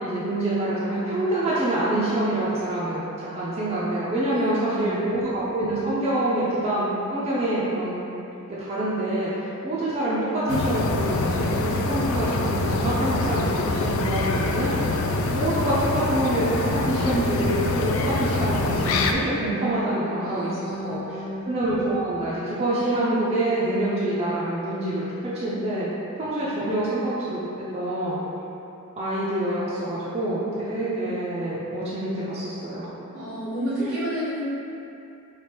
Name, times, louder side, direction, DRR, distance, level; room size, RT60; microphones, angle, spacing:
voice 1, 0.0-8.0 8.6-14.7 15.3-16.5 16.8-21.0 21.5-25.9 26.2-27.5 27.7-28.2 29.0-32.9 33.8-33.9, right 1 dB, 30° right, -9 dB, 0.5 m, -26 dB
voice 2, 4.3-5.0 20.2-21.5 33.1-34.4, equal, 75° right, -9 dB, 1.4 m, -30 dB
sound 1, 10.5-19.1, left 3 dB, 70° left, 0.3 m, -25 dB
3.3 x 2.5 x 4.4 m, 2.8 s
head